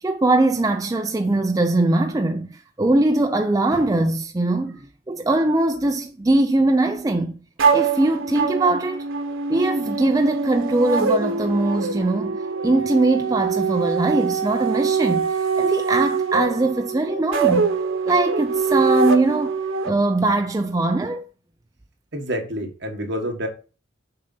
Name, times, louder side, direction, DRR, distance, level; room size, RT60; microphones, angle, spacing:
voice 1, 0.0-7.4 7.7-9.0 9.5-12.4 12.6-17.8 18.1-19.6 19.8-21.2, right 2 dB, 20° right, 0.4 m, -21 dB
sound 1, 7.6-19.9, right 5 dB, 90° right, 1.0 m, -23 dB
voice 2, 22.1-23.5, equal, 60° right, 1.5 m, -28 dB
6.7 x 3.9 x 5.4 m
head